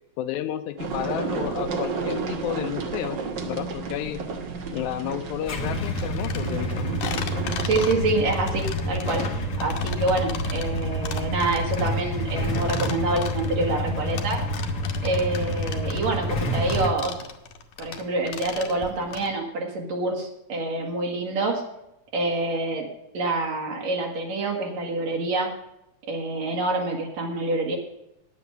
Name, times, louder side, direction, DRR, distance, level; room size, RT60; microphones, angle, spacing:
voice 1, 0.2-4.2 4.7-6.9, left 11 dB, 90° left, 9 dB, 2.1 m, -31 dB
sound 1, 0.8-7.8, right 5 dB, 50° right, 1.5 m, -32 dB
Motorcycle / Engine starting / Idling, 5.5-16.9, equal, 45° left, 1.6 m, -28 dB
sound 2, 5.8-19.3, left 7 dB, 70° left, 2.3 m, -37 dB
voice 2, 7.6-14.4 15.0-17.2 17.8-21.6 22.1-22.9 23.1-25.5 26.0-27.8, right 2 dB, 65° right, 0 dB, 2.8 m, -26 dB
9.8 x 8.4 x 6.7 m, 0.85 s
omnidirectional pair, 3.3 m